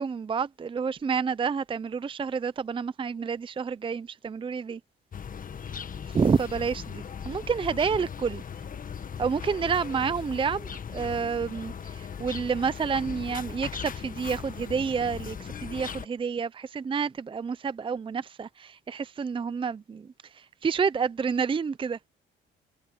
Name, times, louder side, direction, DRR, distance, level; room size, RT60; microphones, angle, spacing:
voice 1, 0.0-4.8 6.1-8.4 9.2-22.0, right 6 dB, 25° right, 0.5 m, -29 dB
sound 1, 5.1-16.1, left 7 dB, 45° left, 1.5 m, -38 dB
cardioid pair, 90°, 20 cm